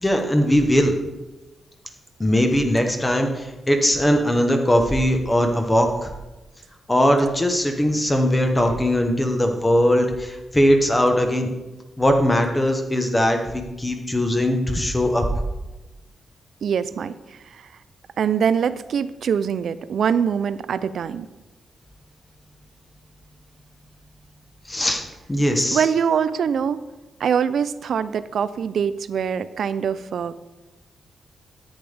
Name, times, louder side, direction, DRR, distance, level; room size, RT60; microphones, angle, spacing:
voice 1, 0.0-0.9 2.2-6.1 6.9-11.5 12.0-15.2 24.7-25.8, equal, 15° left, 4 dB, 0.9 m, -20 dB
voice 2, 16.6-17.7 18.2-21.3 25.6-26.8 27.2-30.3, right 7 dB, 65° right, 14 dB, 0.4 m, -23 dB
10.0 x 8.8 x 3.4 m, 1.1 s
wide cardioid pair, 160°, 0 cm